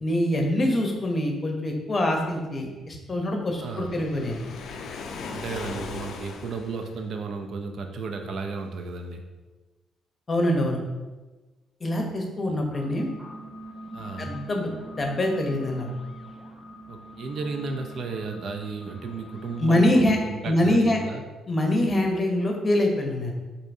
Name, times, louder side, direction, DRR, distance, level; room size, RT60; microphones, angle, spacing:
voice 1, 0.0-4.4 10.3-10.8 11.8-13.1 14.2-14.7 15.0-15.9 19.6-20.2 20.4-21.0 21.5-23.3, left 1 dB, 35° left, 2 dB, 0.7 m, -24 dB
Waves surf, 3.6-7.1, left 4 dB, 70° left, 0.3 m, -38 dB
voice 2, 3.6-3.9 5.3-9.2 13.9-14.3 16.9-21.2, right 4 dB, 65° right, 4 dB, 0.4 m, -34 dB
sound 1, 12.7-19.8, equal, 5° right, 0.6 m, -43 dB
4.5 x 2.7 x 2.6 m, 1.2 s
cardioid pair, 90°, 0 cm